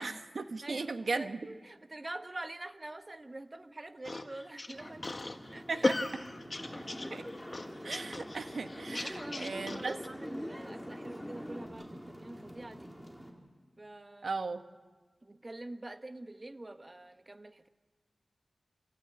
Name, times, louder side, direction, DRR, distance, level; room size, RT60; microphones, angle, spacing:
voice 1, 0.0-1.4 5.7-6.2 7.1-7.2 7.8-10.0 14.2-14.6, right 3 dB, 75° right, 8 dB, 1.3 m, -37 dB
voice 2, 0.6-5.1 5.5-5.9 8.9-12.9 13.8-14.3 15.2-17.7, right 2 dB, 40° right, 9 dB, 1.4 m, -46 dB
sound 1, 4.0-10.1, left 2 dB, 45° left, 1.6 m, -36 dB
sound 2, 4.7-13.3, equal, 15° right, 4.5 m, -49 dB
sound 3, 6.6-11.7, equal, 10° left, 3.7 m, -44 dB
27.5 x 15.0 x 8.8 m, 1.4 s
cardioid pair, 40°, 0 cm